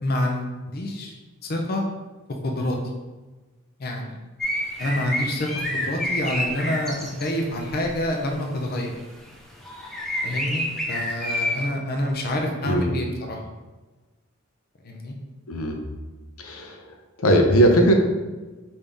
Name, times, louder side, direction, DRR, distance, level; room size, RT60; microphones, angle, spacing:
voice 1, 0.0-1.1 1.4-1.8 2.4-2.8 3.8-4.2 4.8-5.5 5.8-8.9 10.2-13.4 14.8-15.2, left 1 dB, 45° left, 1 dB, 0.6 m, -27 dB
sound 1, 4.4-7.3 7.6-8.0 9.3-9.4 9.6-11.6, left 1 dB, ahead, 0.6 m, -28 dB
voice 2, 12.6-13.0 15.5-15.8 16.4-18.0, right 1 dB, 85° left, 3 dB, 0.6 m, -20 dB
5.2 x 2.7 x 3.5 m, 1.2 s
head